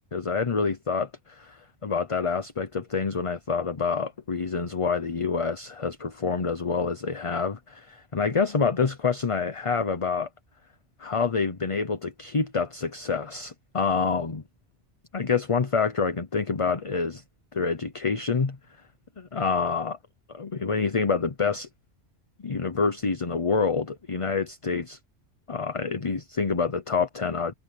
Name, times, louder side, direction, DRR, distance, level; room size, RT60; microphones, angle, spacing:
voice 1, 0.1-10.3 11.0-14.4 15.1-17.2 17.5-18.6 19.2-20.0 20.3-21.7 22.4-25.0 25.5-27.5, left 5 dB, 30° left, 0.9 m, -27 dB
omnidirectional pair, 1.2 m